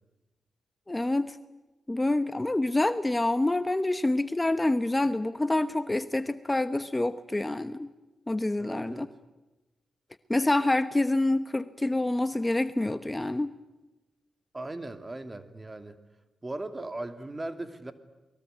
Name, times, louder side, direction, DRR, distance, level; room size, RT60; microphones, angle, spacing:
voice 1, 0.9-1.4 1.9-7.9 8.3-9.1 10.3-13.5, left 2 dB, 20° left, 12 dB, 1.1 m, -27 dB
voice 2, 8.6-9.1 14.5-16.0 16.4-17.9, right 2 dB, 25° right, 9 dB, 2.6 m, -38 dB
29.0 x 21.5 x 9.2 m, 1.1 s
supercardioid pair, 55°, 0 cm